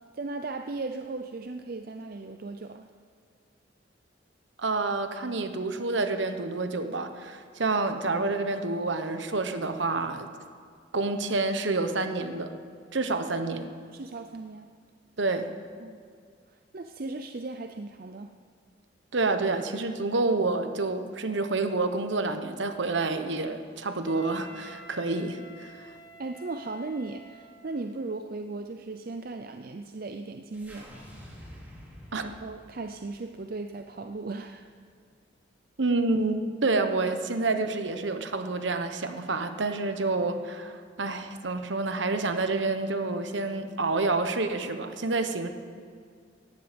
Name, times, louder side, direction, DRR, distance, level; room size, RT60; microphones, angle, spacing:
voice 1, 0.1-2.9 13.9-14.7 15.8-16.0 16.7-18.3 26.2-30.9 32.2-34.7, right 3 dB, 50° right, 6 dB, 0.5 m, -37 dB
voice 2, 4.6-10.3 10.9-12.5 12.9-13.7 15.2-15.5 19.1-25.7 32.1-32.2 35.8-45.5, right 3 dB, 70° right, 8 dB, 1.1 m, -28 dB
Wind instrument woodwind instrument, 24.0-27.9, equal, 45° left, 3.7 m, -49 dB
sound 1, 30.5-34.8, equal, 10° right, 3.0 m, -49 dB
18.0 x 15.0 x 5.2 m, 2.1 s
head